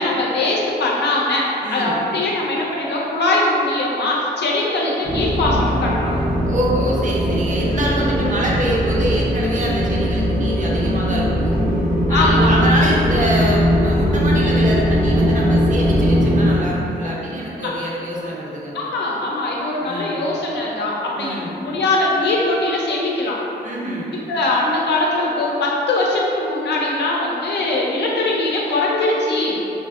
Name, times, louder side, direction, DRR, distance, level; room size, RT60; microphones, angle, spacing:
voice 1, 0.0-6.1 12.1-12.5 17.6-17.7 18.7-23.4 24.3-29.6, left 2 dB, 75° left, -3 dB, 0.5 m, -21 dB
voice 2, 1.6-2.0 6.5-11.6 12.1-18.7 19.8-20.2 21.1-21.5 23.6-24.2, right 1 dB, 45° right, -4 dB, 0.6 m, -25 dB
sound 1, 5.0-16.6, equal, 70° right, 1.0 m, -19 dB
2.6 x 2.5 x 2.4 m, 2.8 s
cardioid pair, 65°, 18 cm